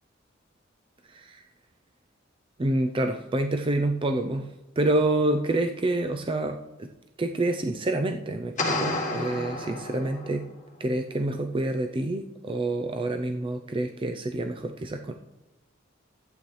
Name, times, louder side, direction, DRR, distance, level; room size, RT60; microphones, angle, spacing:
voice 1, 1.1-1.4 2.6-6.9 7.2-10.5 10.8-15.1, right 2 dB, 25° right, 5 dB, 0.5 m, -27 dB
sound 1, 8.6-10.5, left 2 dB, 40° left, 1.4 m, -30 dB
14.0 x 8.8 x 3.2 m, 0.96 s
head